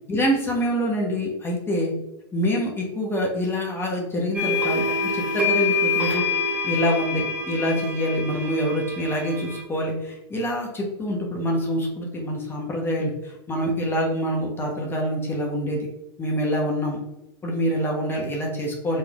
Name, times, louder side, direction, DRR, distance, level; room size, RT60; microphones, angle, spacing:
voice 1, 0.1-1.9 2.3-6.2 6.6-15.8 16.2-17.0 17.4-19.0, equal, 15° left, -1 dB, 0.9 m, -26 dB
sound 1, 4.3-9.6, left 3 dB, 10° right, 0.9 m, -26 dB
4.0 x 3.2 x 2.4 m, 0.90 s
hypercardioid pair, 110°, 14 cm